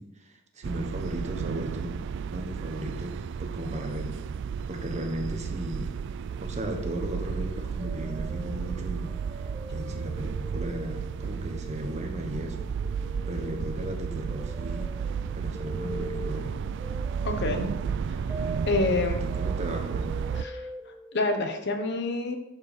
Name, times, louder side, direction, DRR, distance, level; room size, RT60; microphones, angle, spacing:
voice 1, 0.0-1.9 2.3-4.2 4.7-6.0 6.4-12.7 13.3-15.0 15.3-16.6 19.1-20.2, right 1 dB, 35° right, 3 dB, 1.3 m, -36 dB
sound 1, 0.6-20.4, right 6 dB, 60° right, 0.3 m, -33 dB
sound 2, 6.3-12.3 12.5-21.2, equal, 15° right, 0.9 m, -44 dB
voice 2, 17.2-17.7 18.7-19.2 20.4-20.7 21.1-22.4, left 3 dB, 55° left, 5 dB, 1.2 m, -27 dB
11.0 x 5.3 x 5.1 m, 0.92 s
head